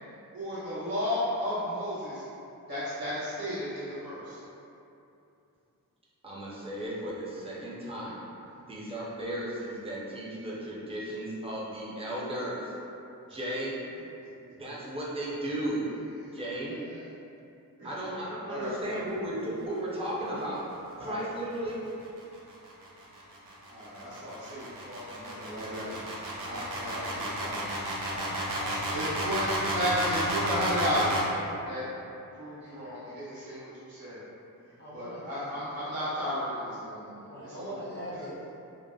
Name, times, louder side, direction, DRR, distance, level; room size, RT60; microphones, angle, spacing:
voice 1, 0.3-2.2 2.7-4.4 13.3-13.4 16.2-16.4 16.9-17.0 17.8-17.9 18.4-19.0 21.0-21.2 23.7-26.1 26.4-28.1 28.9-31.8 32.4-34.2 34.9-37.2 37.4-37.7, equal, 90° right, -13 dB, 0.9 m, -33 dB
voice 2, 6.2-8.2 8.7-12.7 13.3-13.7 14.6-15.8 16.3-16.8 17.8-20.6 21.0-21.7, right 1 dB, 15° right, -7 dB, 0.5 m, -35 dB
voice 3, 18.9-19.4 28.1-28.2 28.5-29.4 32.5-33.2 34.8-35.9 37.2-38.5, equal, 30° left, -7 dB, 0.5 m, -43 dB
sound 1, 22.0-31.3, right 1 dB, 65° right, 0.5 m, -33 dB
2.6 x 2.0 x 2.2 m, 2.7 s
wide cardioid pair, 95°, 35 cm